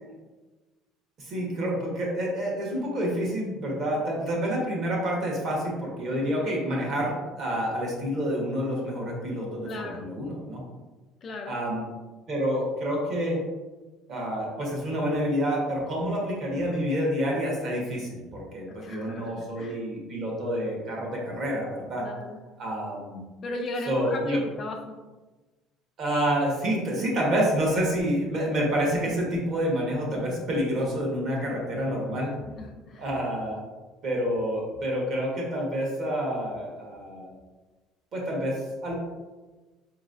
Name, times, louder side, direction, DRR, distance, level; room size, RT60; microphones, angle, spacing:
voice 1, 1.2-10.6 11.5-11.8 12.3-13.4 14.1-22.1 22.6-23.2 23.9-24.4 26.0-32.3 33.0-33.6 34.0-37.3 38.1-38.9, equal, 40° right, -2 dB, 1.1 m, -28 dB
voice 2, 9.7-10.1 11.2-11.6 18.7-19.8 22.0-22.4 23.4-24.9 32.5-33.1, left 2 dB, 30° left, 2 dB, 0.3 m, -36 dB
5.2 x 3.0 x 2.5 m, 1.2 s
cardioid pair, 175°, 0 cm